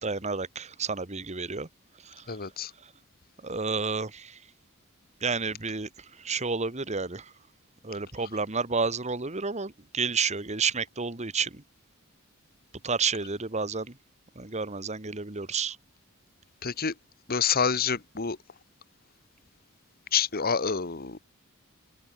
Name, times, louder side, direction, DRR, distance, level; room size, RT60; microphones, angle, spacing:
voice 1, 0.0-1.7 2.0-2.2 3.4-4.4 5.2-5.9 6.2-7.3 7.8-11.6 12.8-13.9 14.3-15.8, right 5 dB, 30° right, 1.6 m, -30 dB
voice 2, 2.3-2.7 16.6-16.9 17.3-18.4 20.1-21.2, left 6 dB, 45° left, 1.4 m, -27 dB
head